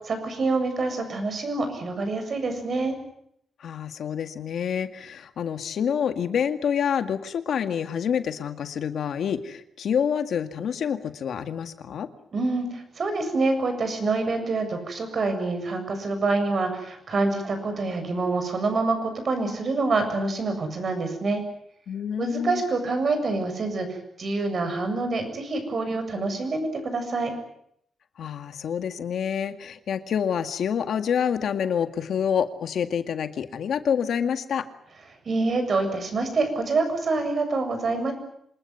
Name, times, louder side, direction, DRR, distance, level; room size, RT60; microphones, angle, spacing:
voice 1, 0.0-3.0 12.3-21.4 22.2-27.3 35.3-38.1, right 3 dB, 45° right, 7 dB, 7.4 m, -26 dB
voice 2, 3.6-12.1 21.9-22.6 28.2-34.7, left 8 dB, 70° left, 9 dB, 2.0 m, -27 dB
26.5 x 20.0 x 9.5 m, 0.71 s
wide cardioid pair, 130°, 0 cm